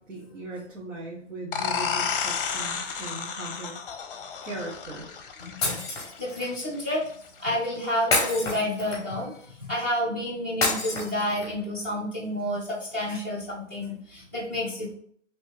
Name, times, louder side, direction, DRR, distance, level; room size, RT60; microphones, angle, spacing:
voice 1, 0.1-3.7 4.4-5.2, right 2 dB, 75° right, -3 dB, 1.2 m, -38 dB
sound 1, 1.5-6.9, left 6 dB, 45° left, 0.5 m, -32 dB
voice 2, 5.4-5.8 6.2-7.0 7.4-9.3 9.6-14.9, left 1 dB, 10° right, -7 dB, 0.4 m, -29 dB
Shatter, 5.6-6.5 8.1-9.2 10.6-11.6, left 2 dB, 10° left, 0.9 m, -28 dB
3.0 x 2.8 x 3.2 m, 0.62 s
hypercardioid pair, 145°, 37 cm